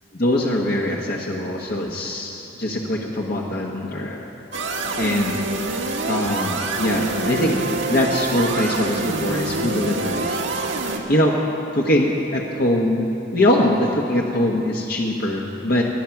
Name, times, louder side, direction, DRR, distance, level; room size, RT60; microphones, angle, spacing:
voice 1, 0.1-4.3 4.9-5.4 6.1-7.6 7.9-10.4 11.1-11.4 11.7-15.8, left 1 dB, 55° left, -2 dB, 1.1 m, -22 dB
sound 1, 4.5-11.0, right 2 dB, 85° right, 1.5 m, -26 dB
23.5 x 9.1 x 5.9 m, 2.9 s
head